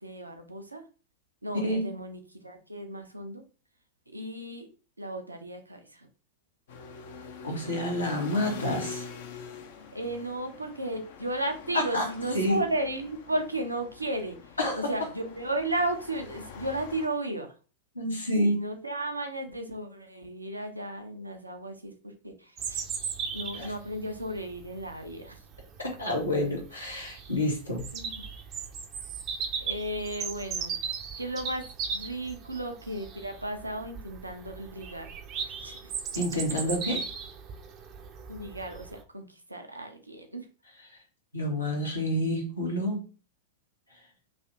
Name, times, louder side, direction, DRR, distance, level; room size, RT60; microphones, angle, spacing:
voice 1, 0.0-0.8 1.4-3.4 4.1-4.7 5.0-6.1 7.8-8.3 9.9-14.4 14.7-17.5 18.4-22.8 23.3-25.4 27.9-28.3 29.6-31.7 31.9-35.1 35.4-35.9 38.3-40.5, right 1 dB, 85° right, 5 dB, 0.6 m, -34 dB
voice 2, 1.5-1.9 7.4-9.1 11.7-12.1 12.3-12.6 14.6-14.9 17.9-18.6 23.6-23.7 25.8-27.9 36.1-37.1 41.3-43.0, left 1 dB, 85° left, -1 dB, 1.1 m, -28 dB
sound 1, 6.7-17.1, left 6 dB, 55° left, 0.5 m, -44 dB
Bird vocalization bird call bird song, 22.6-39.0, right 6 dB, 35° right, 0.5 m, -37 dB
3.2 x 2.7 x 2.7 m, 0.36 s
figure-of-eight pair, 90°, 0 cm